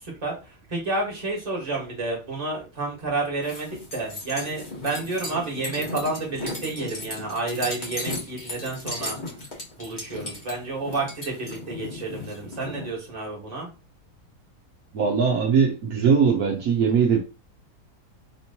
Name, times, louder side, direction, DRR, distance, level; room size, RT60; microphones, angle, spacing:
voice 1, 0.0-9.2 9.8-13.7, right 3 dB, 25° right, 1.4 m, -30 dB
sound 1, 3.4-12.9, left 2 dB, 30° left, 1.2 m, -36 dB
voice 2, 14.9-17.2, right 6 dB, 70° right, 1.1 m, -20 dB
4.3 x 3.0 x 2.8 m
omnidirectional pair, 1.7 m